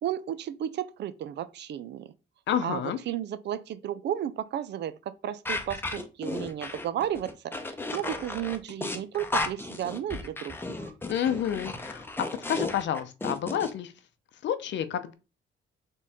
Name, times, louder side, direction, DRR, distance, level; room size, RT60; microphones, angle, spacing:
voice 1, 0.0-2.1 2.6-5.0 5.2-10.9, right 11 dB, 60° right, 0.4 m, -33 dB
voice 2, 2.5-3.0 11.1-12.0 12.5-13.9 14.4-15.1, left 9 dB, 65° left, 0.7 m, -29 dB
sound 1, 5.4-13.7, left 2 dB, 10° left, 0.7 m, -34 dB
4.4 x 3.1 x 3.6 m
cardioid pair, 90°, 20 cm